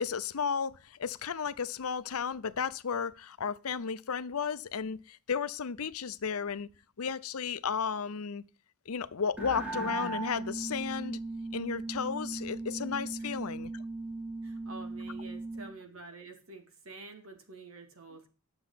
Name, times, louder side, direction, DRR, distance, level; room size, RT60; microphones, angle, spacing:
voice 1, 0.0-6.7 7.0-8.4 8.9-11.2 11.5-13.7, left 6 dB, 85° left, 0.6 m, -34 dB
sound 1, 9.4-15.7, right 2 dB, 5° right, 2.1 m, -38 dB
voice 2, 14.4-18.3, right 3 dB, 65° right, 2.7 m, -48 dB
10.5 x 7.0 x 5.8 m
head